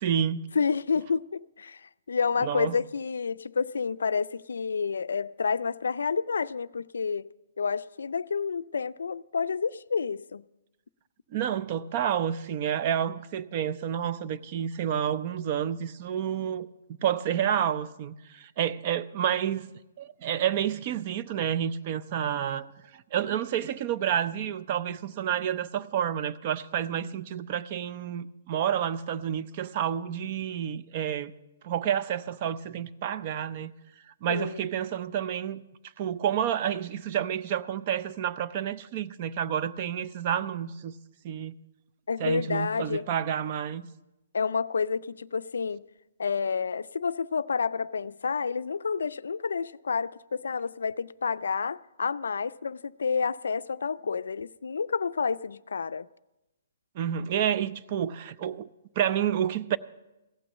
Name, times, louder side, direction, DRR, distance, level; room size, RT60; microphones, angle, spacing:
voice 1, 0.0-0.4 2.4-2.7 11.3-19.7 20.0-31.3 31.6-33.7 34.2-35.6 36.0-40.9 41.2-41.6 42.2-43.9 56.9-58.7 59.0-59.8, right 9 dB, 35° right, 0.5 m, -29 dB
voice 2, 0.5-7.3 7.6-10.4 34.3-34.7 42.1-43.1 44.3-45.8 46.2-56.1, left 5 dB, 90° left, 0.4 m, -29 dB
16.0 x 6.1 x 8.2 m
hypercardioid pair, 155°, 0 cm